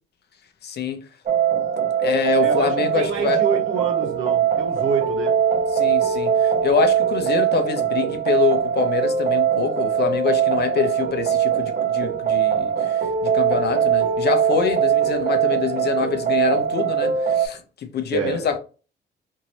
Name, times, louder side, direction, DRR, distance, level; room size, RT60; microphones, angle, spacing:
voice 1, 0.6-1.0 2.0-3.4 5.7-18.6, left 7 dB, 55° left, 0.6 m, -25 dB
sound 1, 1.3-17.5, right 8 dB, 40° right, 0.7 m, -21 dB
voice 2, 2.4-5.4 18.1-18.5, right 5 dB, 80° right, 1.0 m, -27 dB
2.8 x 2.7 x 2.9 m
cardioid pair, 90°, 20 cm